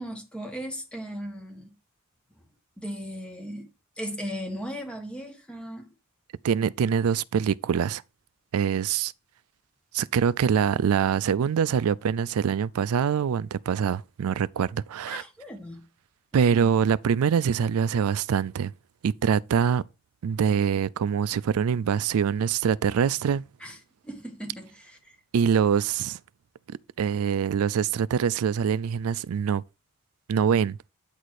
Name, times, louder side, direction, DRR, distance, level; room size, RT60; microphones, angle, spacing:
voice 1, 0.0-1.7 2.8-3.7 4.0-5.9 15.1-15.8 16.5-16.7 23.6-23.8 24.0-25.1, equal, 5° left, 1.4 m, -37 dB
voice 2, 6.4-8.0 8.5-9.1 9.9-15.2 16.3-18.7 19.0-19.8 20.2-23.4 25.3-26.2 27.0-29.6 30.3-30.8, right 7 dB, 80° right, 0.4 m, -24 dB
9.0 x 4.2 x 4.8 m
head